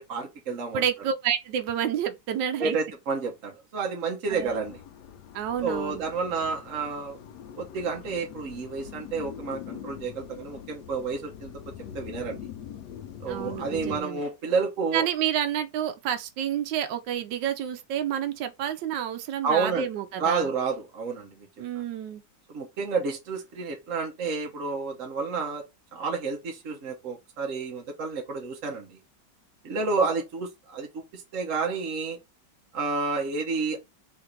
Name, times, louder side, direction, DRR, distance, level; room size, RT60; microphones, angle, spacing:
voice 1, 0.0-0.8 2.6-4.8 5.6-7.2 7.6-11.5 11.9-12.5 13.2-15.1 19.4-19.9 20.2-21.5 22.5-25.6 25.9-29.0 29.6-32.2 32.7-33.8, right 4 dB, 55° right, 1.1 m, -30 dB
voice 2, 0.7-2.8 4.3-4.6 5.3-6.0 13.3-14.2 14.9-20.5 21.6-22.2, right 9 dB, 80° right, 1.3 m, -29 dB
sound 1, 4.3-14.0, left 10 dB, 75° left, 1.1 m, -43 dB
3.9 x 2.6 x 4.4 m
omnidirectional pair, 1.9 m